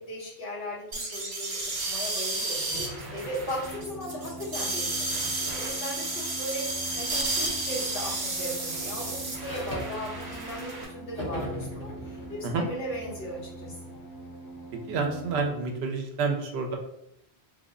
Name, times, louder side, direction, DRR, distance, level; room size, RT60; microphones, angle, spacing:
voice 1, 0.1-1.6 1.9-13.7, equal, 60° left, -5 dB, 1.3 m, -37 dB
sound 1, 0.9-10.8, right 2 dB, 55° right, 0.9 m, -32 dB
sound 2, 2.7-6.0 6.9-7.2 7.6-10.8 11.1-14.7, equal, 20° left, 1.2 m, -42 dB
sound 3, 3.6-15.5, right 2 dB, 85° left, 0.9 m, -43 dB
voice 2, 14.9-16.8, right 4 dB, 75° right, 3 dB, 0.9 m, -29 dB
3.3 x 2.1 x 3.6 m, 0.78 s
omnidirectional pair, 1.1 m